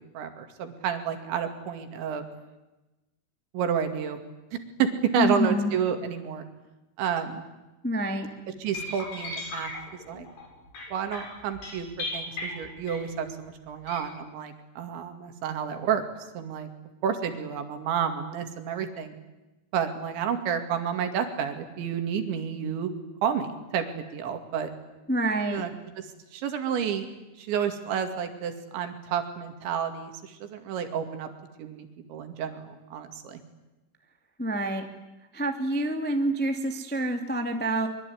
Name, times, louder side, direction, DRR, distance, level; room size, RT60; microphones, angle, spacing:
voice 1, 0.0-2.3 3.5-4.2 4.5-4.9 5.1-6.4 7.0-7.4 8.6-9.7 10.1-10.3 10.9-16.0 16.3-16.7 17.0-19.2 19.7-22.9 23.2-24.7 25.5-25.7 26.3-27.1 27.4-31.3 31.6-33.4, right 8 dB, 70° right, 6 dB, 4.6 m, -30 dB
voice 2, 5.2-5.7 7.8-8.3 25.1-25.6 34.4-34.8 35.3-37.9, right 1 dB, 10° left, 4 dB, 0.6 m, -27 dB
sound 1, 8.7-13.3 13.8-14.0, left 2 dB, 60° left, 9.4 m, -37 dB
24.5 x 23.5 x 9.6 m, 1.0 s
omnidirectional pair, 5.5 m